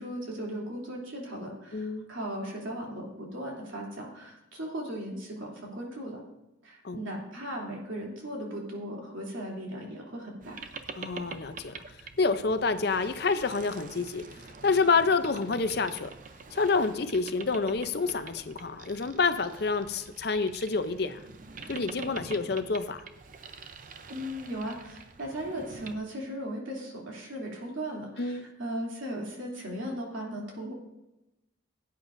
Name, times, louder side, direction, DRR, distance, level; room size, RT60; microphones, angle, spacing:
voice 1, 0.0-6.2 6.6-10.6 24.1-30.7, right 1 dB, 85° right, -2 dB, 2.9 m, -37 dB
voice 2, 1.7-2.1 6.8-7.0 11.0-11.8 12.2-14.3 14.6-16.1 16.5-21.2 21.7-23.0 28.2-28.5, left 4 dB, 55° left, 11 dB, 0.6 m, -28 dB
Boat Water vehicle, 10.4-26.0, right 4 dB, 40° right, 0.6 m, -46 dB
16.5 x 9.1 x 2.6 m, 0.95 s
head